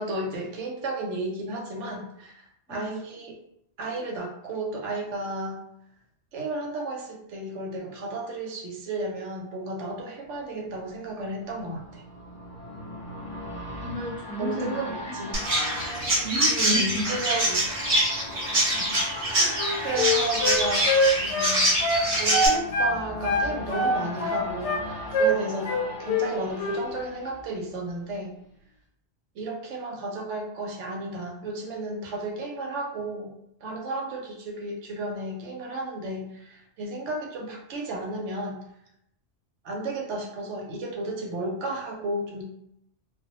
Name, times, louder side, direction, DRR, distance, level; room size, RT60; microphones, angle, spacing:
voice 1, 0.0-3.4 3.8-5.6 6.3-12.0 14.4-15.4 16.5-17.5 18.4-19.0 19.3-21.8 22.2-25.7 26.0-28.3 29.3-33.3 33.6-38.6 39.6-42.5, right 2 dB, 85° right, -1 dB, 0.9 m, -33 dB
sound 1, 10.3-28.1 28.5-28.6, left 1 dB, 55° left, 0.3 m, -40 dB
voice 2, 13.8-15.2 16.0-17.0 17.4-17.6, right 1 dB, 5° left, -6 dB, 0.6 m, -32 dB
Chirp tweet, 15.3-22.5, right 1 dB, 50° right, 0.7 m, -25 dB
Wind instrument woodwind instrument, 19.5-22.9 23.2-24.8 25.1-25.4 25.6-26.3 26.6-26.8, left 1 dB, 80° left, 0.9 m, -24 dB
2.2 x 2.0 x 2.9 m, 0.76 s
omnidirectional pair, 1.2 m